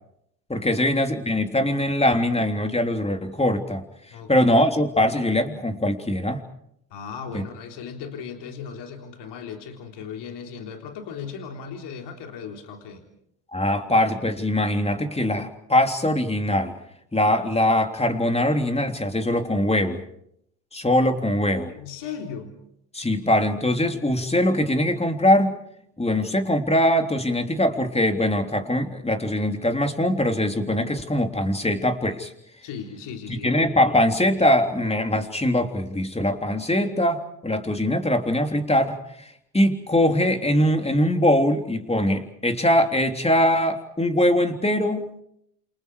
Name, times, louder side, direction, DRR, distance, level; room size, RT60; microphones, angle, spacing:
voice 1, 0.5-3.8 4.3-6.4 7.3-7.4 13.5-16.7 17.1-20.0 20.7-21.7 22.9-25.6 26.0-32.3 33.4-39.0 39.5-45.2, left 1 dB, 15° left, 5 dB, 3.5 m, -22 dB
voice 2, 4.1-4.5 6.9-13.1 21.7-22.6 32.6-33.6, left 6 dB, 70° left, 3 dB, 3.7 m, -37 dB
28.5 x 28.0 x 4.9 m, 0.74 s
hypercardioid pair, 55°, 43 cm